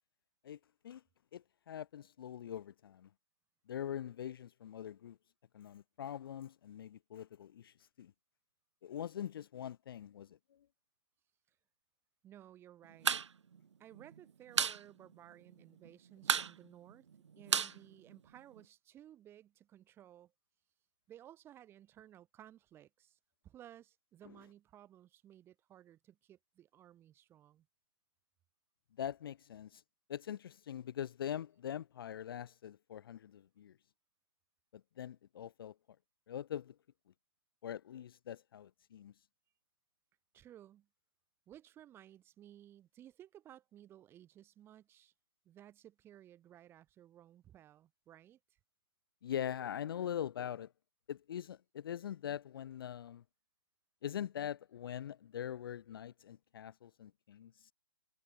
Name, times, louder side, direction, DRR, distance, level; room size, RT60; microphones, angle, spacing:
voice 1, 1.3-3.1 3.7-5.2 5.5-8.1 8.8-10.4 29.0-29.8 30.1-33.7 34.7-35.7 36.3-36.7 37.6-39.1 49.2-50.7 51.1-53.2 54.0-57.7, left 10 dB, 55° left, 0.5 m, -43 dB
voice 2, 12.2-13.1 13.8-17.1 17.4-20.3 21.1-23.2 23.4-27.7 40.3-40.9 41.5-45.1 45.4-48.6, right 11 dB, 15° right, 2.6 m, -58 dB
sound 1, 12.9-13.3 13.5-13.6 13.9-14.8 15.1-15.2 15.5-15.9 16.2-18.6, right 7 dB, 85° right, 0.5 m, -33 dB
hypercardioid pair, 145°, 15 cm